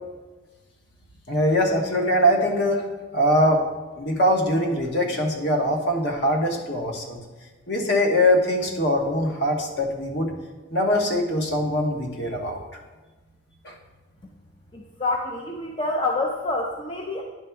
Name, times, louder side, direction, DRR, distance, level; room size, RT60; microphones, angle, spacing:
voice 1, 1.3-2.8 3.1-3.6 4.0-7.2 7.7-10.3 10.7-12.6 13.6-13.7, equal, 55° left, 2 dB, 1.1 m, -22 dB
voice 2, 14.7-17.2, left 2 dB, 25° left, 0 dB, 0.5 m, -27 dB
9.8 x 3.4 x 5.8 m, 1.3 s
head